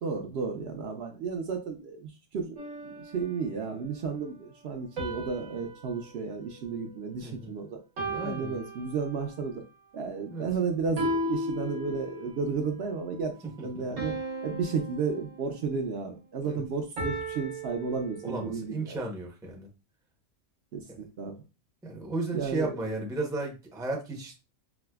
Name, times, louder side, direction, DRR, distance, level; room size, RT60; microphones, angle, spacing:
voice 1, 0.0-7.8 8.2-9.6 9.9-14.1 14.4-19.0 20.7-21.3 22.3-22.8, right 5 dB, 65° right, 4 dB, 0.8 m, -33 dB
sound 1, 2.6-3.8 5.0-7.4 8.0-9.4 11.0-12.4 14.0-15.8 17.0-18.6, right 1 dB, 85° right, 1.3 m, -37 dB
voice 2, 7.2-7.5 8.0-8.6 10.3-10.5 13.6-13.8 16.4-16.6 18.2-19.7 20.9-21.1 21.8-24.4, right 2 dB, 5° right, 0 dB, 0.5 m, -34 dB
4.8 x 2.0 x 2.3 m, 0.28 s
omnidirectional pair, 1.3 m